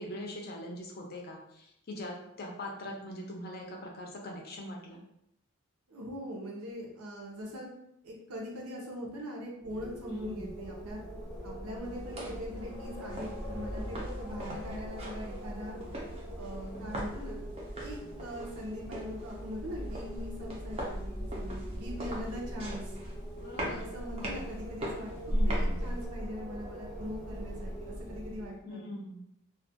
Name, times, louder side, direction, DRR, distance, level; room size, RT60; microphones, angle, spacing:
voice 1, 0.0-5.0 10.1-10.5 23.4-23.9 24.2-24.4 25.3-26.0 28.6-29.2, left 1 dB, 45° left, 0 dB, 0.4 m, -42 dB
voice 2, 5.9-7.7 8.0-11.0 11.4-15.8 16.4-17.4 17.8-23.0 23.6-28.8, equal, 85° right, -2 dB, 0.7 m, -41 dB
Wind, 9.6-28.6, equal, 15° left, 0.8 m, -39 dB
sound 1, 11.8-26.1, right 1 dB, 25° right, 0.4 m, -43 dB
2.3 x 2.2 x 2.7 m, 0.77 s
head